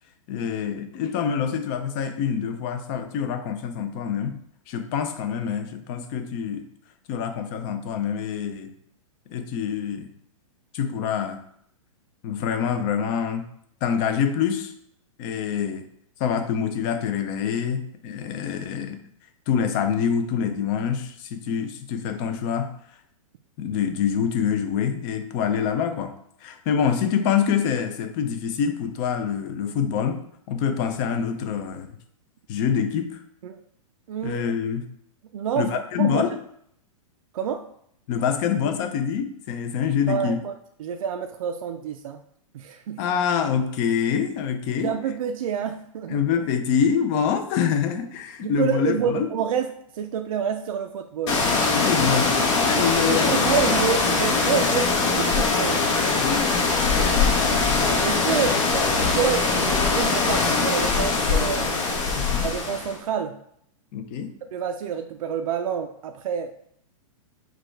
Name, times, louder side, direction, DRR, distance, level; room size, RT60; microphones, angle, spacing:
voice 1, 0.3-4.4 4.7-6.6 7.1-8.7 9.3-10.1 10.7-11.4 12.2-13.4 13.8-14.7 15.2-15.8 16.2-19.0 19.5-22.7 23.6-26.1 26.4-31.9 32.5-33.2 34.2-34.8 35.6-36.4 38.1-40.4 43.0-44.9 46.1-49.3 51.6-53.4 56.2-56.5 62.2-62.5 63.9-64.3, left 7 dB, 35° left, 7 dB, 0.5 m, -25 dB
voice 2, 34.1-34.5 35.3-35.7 36.0-36.2 37.3-37.6 40.1-40.5 40.8-42.2 42.5-43.0 44.8-46.2 48.4-51.5 53.1-55.8 58.0-61.7 62.4-63.4 64.5-66.5, right 7 dB, 75° right, 6 dB, 0.5 m, -28 dB
sound 1, 51.3-63.0, left 4 dB, 55° left, 1.1 m, -22 dB
4.9 x 2.3 x 4.5 m, 0.69 s
hypercardioid pair, 145°, 18 cm